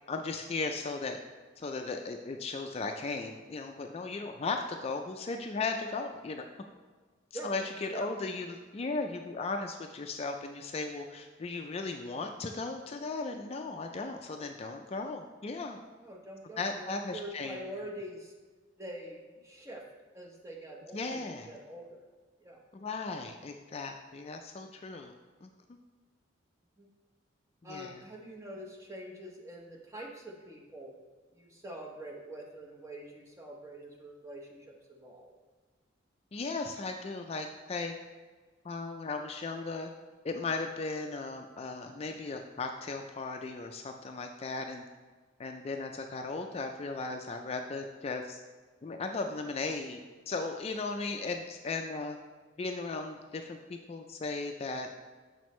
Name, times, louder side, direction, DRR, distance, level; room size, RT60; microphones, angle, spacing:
voice 1, 0.1-1.2 1.6-6.5 7.4-15.8 16.6-17.6 20.9-21.5 22.7-25.1 25.4-25.5 27.6-28.0 36.3-37.9 38.6-39.9 40.2-44.8 45.4-48.4 48.8-50.0 50.3-52.2 52.6-54.9, left 3 dB, 30° left, 4 dB, 0.3 m, -36 dB
voice 2, 16.0-18.3 18.8-19.2 19.4-19.9 20.1-22.0 22.4-22.6 26.8-26.9 27.6-30.9 31.3-35.3, right 1 dB, 15° right, -1 dB, 0.9 m, -45 dB
7.0 x 6.1 x 3.1 m, 1.4 s
head